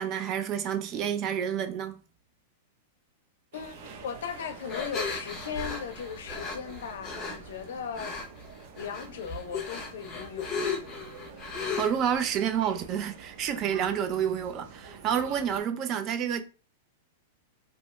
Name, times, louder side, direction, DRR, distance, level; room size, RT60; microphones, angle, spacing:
voice 1, 0.0-2.0 11.8-16.4, right 8 dB, 25° right, 0.3 m, -29 dB
voice 2, 3.5-8.2 8.8-10.8, left 7 dB, 70° left, 0.5 m, -38 dB
sound 1, 3.5-15.6, right 5 dB, 50° right, 0.8 m, -47 dB
sound 2, 4.7-7.4 7.9-8.4 8.8-12.1, left 4 dB, 20° left, 0.6 m, -35 dB
2.7 x 2.2 x 3.1 m
supercardioid pair, 180°, 0 cm